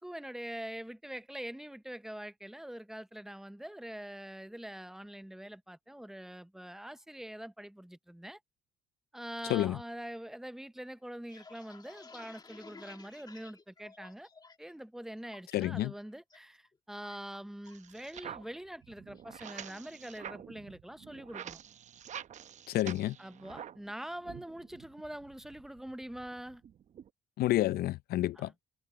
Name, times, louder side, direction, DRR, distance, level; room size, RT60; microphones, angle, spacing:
voice 1, 0.0-8.4 9.1-14.3 14.6-21.6 23.2-26.6 28.4-28.5, right 1 dB, ahead, 0.6 m, -44 dB
sound 1, 11.0-14.7 15.0-15.6 16.0-16.4 16.6-17.9 18.2-18.5 18.8-19.3, left 4 dB, 25° left, 2.1 m, -54 dB
voice 2, 15.5-15.9 22.7-23.2 27.4-28.5, left 15 dB, 65° left, 0.6 m, -29 dB
sound 2, 17.6-23.9 24.2-27.1, right 9 dB, 45° right, 0.8 m, -48 dB
cardioid pair, 110°, 17 cm